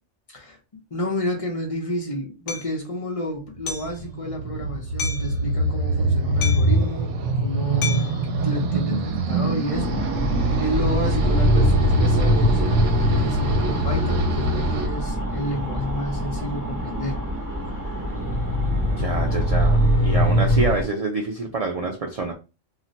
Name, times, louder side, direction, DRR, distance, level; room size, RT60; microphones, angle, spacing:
voice 1, 0.9-9.9 10.6-17.2, equal, 35° left, 0.7 m, -30 dB
Hammer, 2.5-2.7 3.7-4.0 5.0-5.3 6.4-6.8 7.8-8.2, left 5 dB, 80° left, 1.0 m, -31 dB
sound 1, 3.6-14.9, right 1 dB, 80° right, 0.9 m, -24 dB
sound 2, 9.7-20.8, equal, 20° right, 0.6 m, -22 dB
voice 2, 19.0-22.3, right 3 dB, 60° right, 0.3 m, -27 dB
2.4 x 2.1 x 3.8 m
omnidirectional pair, 1.2 m